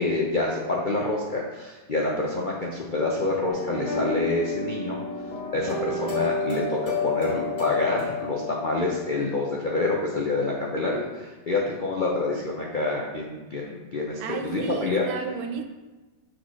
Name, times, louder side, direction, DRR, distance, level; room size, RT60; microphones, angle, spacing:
voice 1, 0.0-5.0 5.5-15.1, left 2 dB, 75° left, -3 dB, 0.4 m, -27 dB
sound 1, 3.5-9.4, left 3 dB, 35° left, 2.1 m, -30 dB
voice 2, 14.2-15.6, right 5 dB, 80° right, 5 dB, 1.4 m, -33 dB
6.3 x 4.8 x 4.7 m, 1.2 s
omnidirectional pair, 2.2 m